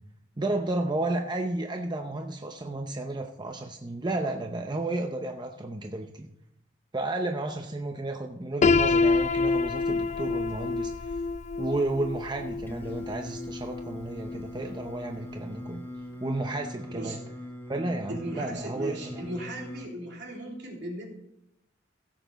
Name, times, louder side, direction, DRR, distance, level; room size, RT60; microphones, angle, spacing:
voice 1, 0.4-6.3 6.9-11.2 11.6-15.9 16.2-17.2 17.7-19.2, right 2 dB, 25° right, 4 dB, 0.7 m, -32 dB
Piano, 8.6-14.5, left 4 dB, 40° left, 0.4 m, -27 dB
Singing, 12.7-19.9, left 1 dB, 10° left, 1.1 m, -41 dB
voice 2, 18.1-21.1, right 1 dB, 65° right, -1 dB, 3.2 m, -37 dB
16.0 x 7.9 x 4.0 m, 0.82 s
head